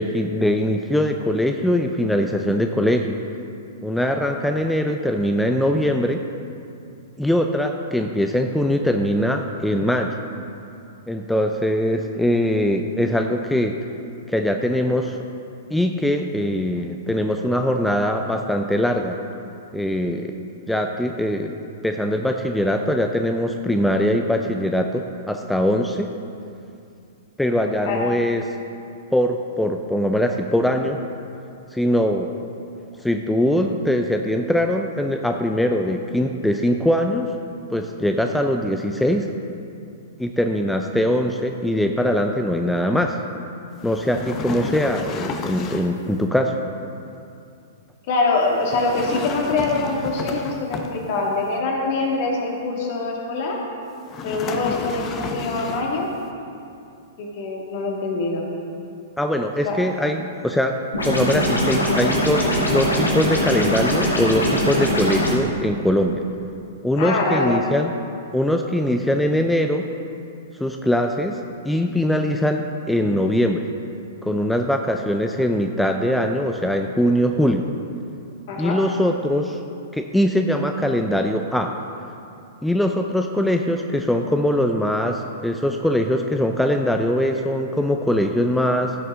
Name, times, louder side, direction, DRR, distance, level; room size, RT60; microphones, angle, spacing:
voice 1, 0.0-3.2 3.8-6.2 7.2-10.2 11.1-13.8 14.3-15.2 15.7-19.2 19.7-20.3 20.7-21.5 21.8-26.1 27.4-28.4 29.1-31.0 31.7-32.3 33.0-37.3 37.7-39.3 40.2-43.2 43.8-46.5 59.2-60.8 61.0-66.2 66.8-67.9 68.3-69.9 70.6-71.4 71.6-73.6 74.2-77.7 78.6-79.6 79.9-81.7 82.6-88.9, equal, 5° left, 4 dB, 0.5 m, -22 dB
sound 1, 43.8-46.1 48.6-51.3 54.1-56.0, left 4 dB, 30° left, 0.8 m, -31 dB
voice 2, 48.1-53.6 54.2-56.1 57.2-58.5 59.6-59.8 67.0-67.6 78.5-78.8, left 3 dB, 50° left, -1 dB, 2.1 m, -24 dB
sound 2, 60.9-65.3, equal, 85° left, 1.9 m, -21 dB
16.0 x 6.8 x 3.7 m, 2.6 s
figure-of-eight pair, 110°, 0 cm